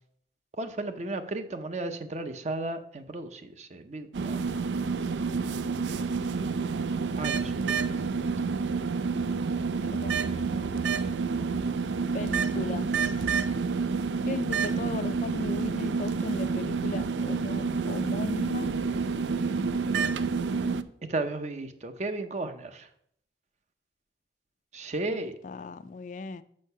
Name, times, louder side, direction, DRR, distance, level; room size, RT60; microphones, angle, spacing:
voice 1, 0.6-4.4 7.2-8.3 21.1-22.9 24.7-25.3, right 2 dB, 40° right, 0.6 m, -34 dB
sound 1, 4.1-20.8, right 5 dB, 85° right, 0.4 m, -29 dB
voice 2, 9.9-10.3 12.1-13.1 14.3-18.7 25.1-26.4, left 3 dB, 45° left, 0.4 m, -37 dB
6.4 x 5.6 x 5.4 m
head